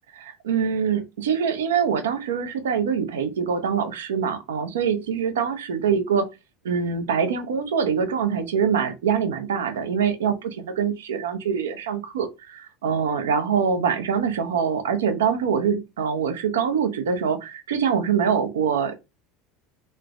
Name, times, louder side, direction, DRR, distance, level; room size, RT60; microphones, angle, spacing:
voice 1, 0.2-6.3 6.6-18.9, right 7 dB, 85° right, 0.5 m, -24 dB
3.1 x 2.0 x 2.3 m
hypercardioid pair, 85°, 0 cm